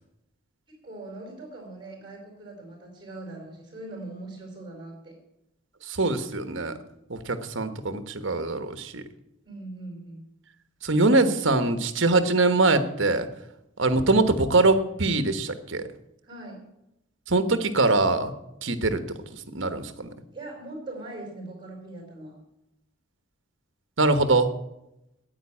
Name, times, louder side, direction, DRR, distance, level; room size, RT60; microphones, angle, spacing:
voice 1, 0.7-5.1 9.4-10.2 16.2-16.6 20.3-22.3, right 2 dB, 20° right, 0 dB, 4.6 m, -41 dB
voice 2, 5.8-6.7 7.1-9.0 10.8-13.3 13.8-15.9 17.3-18.3 18.6-20.1 24.0-24.5, right 2 dB, 60° right, 10 dB, 1.2 m, -23 dB
9.4 x 9.3 x 8.4 m, 0.87 s
head